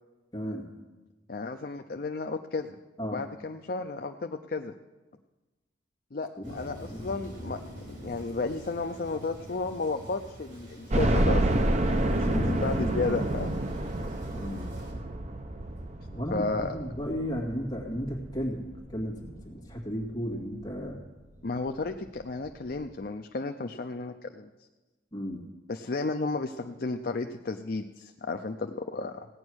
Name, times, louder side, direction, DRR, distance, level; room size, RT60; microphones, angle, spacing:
voice 1, 0.3-0.7 3.0-3.2 6.4-6.6 6.8-7.0 12.2-12.6 14.3-14.7 16.1-18.7 18.9-21.0 25.1-25.4, equal, 20° left, -1 dB, 2.1 m, -34 dB
voice 2, 1.3-2.7 3.0-4.7 6.1-7.6 7.9-11.5 12.1-13.6 16.3-16.8 21.4-24.5 25.7-29.3, left 3 dB, 50° left, 6 dB, 0.5 m, -33 dB
Thunder, 6.4-14.9, equal, 85° right, 4.7 m, -46 dB
sound 1, 10.9-19.8 20.3-20.4 20.8-20.9 22.1-22.2 22.4-22.5, right 1 dB, 40° right, 0.8 m, -29 dB
17.0 x 9.7 x 6.3 m, 1.2 s
head